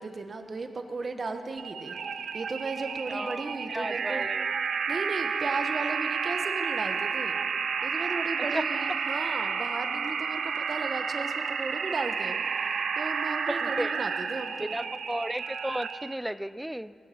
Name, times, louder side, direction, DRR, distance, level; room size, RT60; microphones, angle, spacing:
voice 1, 0.0-2.0 2.3-4.3 4.9-7.4 7.8-12.4 13.0-14.8, right 3 dB, 45° right, 6 dB, 1.2 m, -35 dB
sound 1, 1.6-16.2, right 6 dB, 70° right, 0.6 m, -31 dB
voice 2, 3.1-4.5 8.4-8.7 13.5-14.0 14.6-17.0, equal, 5° right, 17 dB, 0.3 m, -34 dB
19.5 x 7.4 x 8.5 m, 2.5 s
cardioid pair, 95°, 0 cm